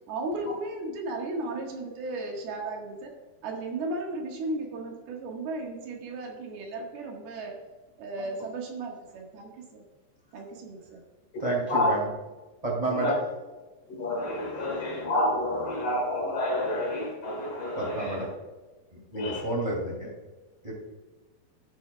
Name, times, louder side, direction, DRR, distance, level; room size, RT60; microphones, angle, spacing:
voice 1, 0.1-3.1 3.4-7.6 8.0-9.8 10.3-11.0, right 2 dB, 70° right, 3.3 m, -35 dB
voice 2, 11.4-12.0 12.6-13.1 17.8-18.3 19.1-20.1 20.6-20.7, right 2 dB, 15° right, 1.2 m, -29 dB
voice 3, 13.9-18.2 19.1-19.4, left 1 dB, 60° left, 1.8 m, -29 dB
13.0 x 9.1 x 2.3 m
omnidirectional pair, 5.0 m